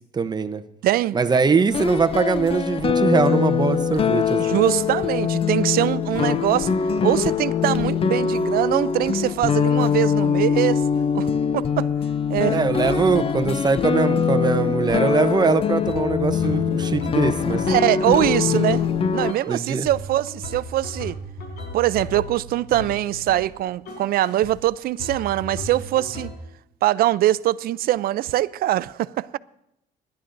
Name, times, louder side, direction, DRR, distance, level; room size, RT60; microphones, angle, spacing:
voice 1, 0.1-0.6 1.1-4.6 12.5-17.6 18.5-18.6 19.5-19.9, right 4 dB, 25° right, 0.7 m, -22 dB
voice 2, 0.8-1.2 4.4-6.8 7.0-10.8 11.1-11.9 12.3-12.6 17.7-18.8 19.1-21.2 21.7-26.3 26.8-29.4, right 14 dB, 60° right, 0.4 m, -22 dB
sound 1, 1.7-19.3, left 7 dB, 35° left, 0.5 m, -22 dB
sound 2, 15.4-15.5 15.8-18.9 19.3-19.6 19.8-23.5 23.8-24.6 25.0-26.3, left 1 dB, 75° left, 4.6 m, -36 dB
27.5 x 11.5 x 2.6 m
cardioid pair, 110°, 17 cm